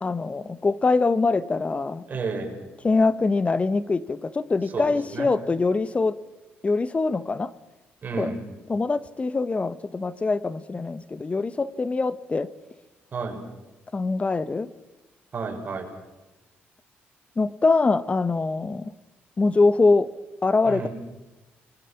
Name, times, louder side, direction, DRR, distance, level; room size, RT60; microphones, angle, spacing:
voice 1, 0.0-2.1 2.8-6.1 6.6-7.5 8.2-8.3 8.7-12.5 13.9-14.7 17.4-18.9 19.4-20.1 20.4-20.9, left 3 dB, 30° left, 16 dB, 1.0 m, -23 dB
voice 2, 2.1-2.6 4.7-4.9 5.1-5.3 8.0-8.4 13.1-13.4 15.3-15.9 20.6-20.9, right 4 dB, 40° right, 2 dB, 6.1 m, -31 dB
29.0 x 21.0 x 5.9 m, 1.1 s
cardioid pair, 85°, 4 cm